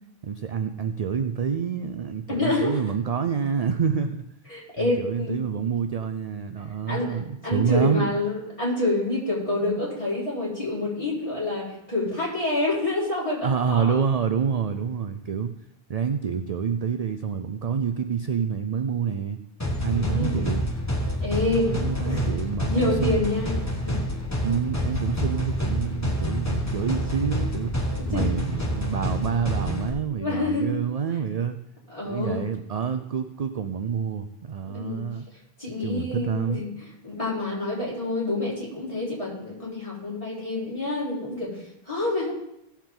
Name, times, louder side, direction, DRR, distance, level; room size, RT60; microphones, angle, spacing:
voice 1, 0.2-4.2 4.8-8.1 13.4-15.5 15.9-19.4 19.8-20.6 21.7-23.2 24.4-27.7 28.1-31.6 32.0-35.3 35.8-36.8, right 7 dB, 50° right, 8 dB, 0.5 m, -27 dB
voice 2, 2.3-2.8 4.5-5.3 6.9-14.0 19.9-20.5 21.2-21.7 22.0-22.2 22.7-24.0 28.0-28.3 30.2-30.8 31.9-32.4 34.7-35.0 35.6-36.7 37.0-42.3, left 2 dB, 30° left, -8 dB, 4.6 m, -27 dB
sound 1, 19.6-29.9, equal, 15° left, 1.4 m, -28 dB
17.5 x 7.3 x 3.8 m, 0.81 s
omnidirectional pair, 1.1 m